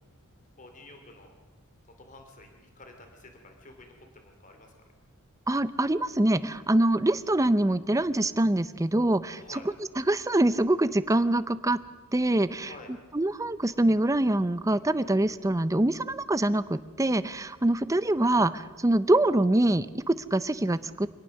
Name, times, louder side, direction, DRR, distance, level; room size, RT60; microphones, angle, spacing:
voice 1, 0.6-1.3 2.0-4.7 9.3-9.7 12.5-12.9, left 2 dB, 35° left, 4 dB, 2.7 m, -50 dB
voice 2, 5.5-9.6 10.0-11.8 12.1-12.7 13.1-21.1, right 1 dB, 15° right, 14 dB, 0.6 m, -24 dB
25.5 x 17.5 x 6.4 m, 1.3 s
head